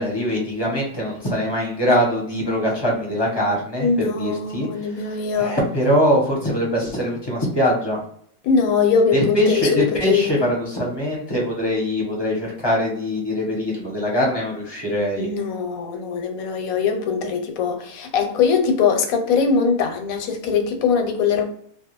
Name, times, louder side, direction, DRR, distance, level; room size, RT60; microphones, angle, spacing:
voice 1, 0.0-4.7 4.9-8.0 9.1-15.3, equal, 25° left, 0.6 m, -22 dB
voice 2, 3.8-5.6 8.4-10.4 15.2-21.6, left 5 dB, 85° left, 1.0 m, -21 dB
2.2 x 2.2 x 2.9 m
omnidirectional pair, 1.5 m